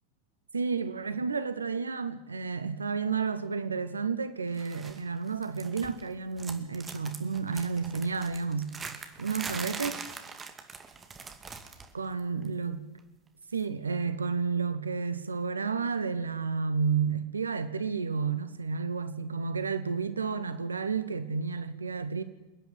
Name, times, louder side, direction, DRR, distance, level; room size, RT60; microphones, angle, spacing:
voice 1, 0.5-8.7 9.2-10.0 11.9-12.8 13.5-22.2, right 5 dB, 75° right, 1.1 m, -31 dB
sound 1, 4.6-5.0 5.3-6.1 6.4-11.9 12.2-12.5 13.5-13.6, right 5 dB, 15° right, 2.3 m, -42 dB
27.0 x 10.0 x 9.7 m
figure-of-eight pair, 90°, 0 cm